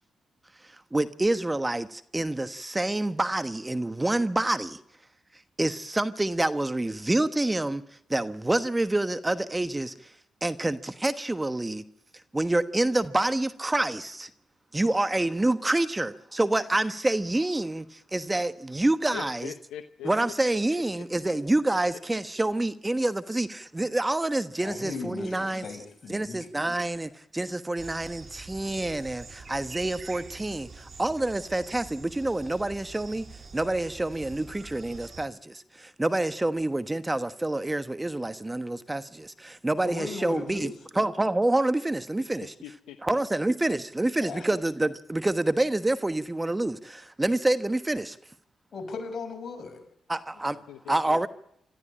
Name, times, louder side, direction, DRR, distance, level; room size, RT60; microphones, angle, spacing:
voice 1, 0.9-4.8 5.6-7.8 8.1-9.9 10.4-11.8 12.3-14.3 14.7-19.5 20.0-25.7 26.1-33.2 33.5-42.5 43.0-48.2 50.1-50.6 50.9-51.3, right 2 dB, 20° right, 1.2 m, -27 dB
voice 2, 19.1-20.1 21.0-21.4 42.4-43.2 50.4-51.3, left 11 dB, 85° left, 0.8 m, -42 dB
voice 3, 24.6-26.4 39.8-40.7 44.2-44.4 48.7-49.8, left 4 dB, 55° left, 6.0 m, -37 dB
sound 1, 27.8-35.3, right 4 dB, 50° right, 2.7 m, -45 dB
26.0 x 14.0 x 8.7 m
supercardioid pair, 40°, 0 cm